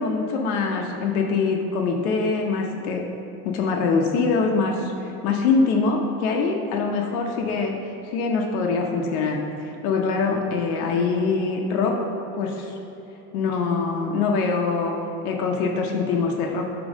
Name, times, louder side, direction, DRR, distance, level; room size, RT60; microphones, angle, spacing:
voice 1, 0.0-3.0 3.4-7.7 8.1-12.0 12.3-12.8 13.3-14.9 15.2-16.7, left 4 dB, 75° left, 1 dB, 0.9 m, -23 dB
8.7 x 3.1 x 6.3 m, 2.9 s
supercardioid pair, 120°, 44 cm